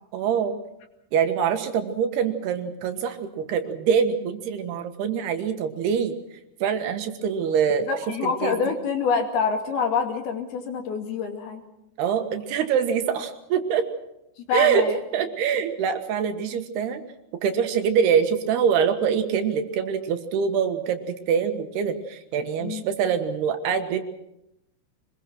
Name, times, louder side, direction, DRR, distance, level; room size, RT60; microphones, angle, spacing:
voice 1, 0.1-0.6 1.1-6.1 6.6-7.9 8.2-8.5 12.0-13.8 14.5-14.9 15.1-17.0 17.4-24.0, right 7 dB, 75° right, 7 dB, 3.4 m, -24 dB
voice 2, 7.8-11.6 14.4-15.0 22.6-22.8, left 5 dB, 65° left, 4 dB, 4.2 m, -26 dB
24.5 x 21.5 x 6.1 m, 0.85 s
omnidirectional pair, 4.9 m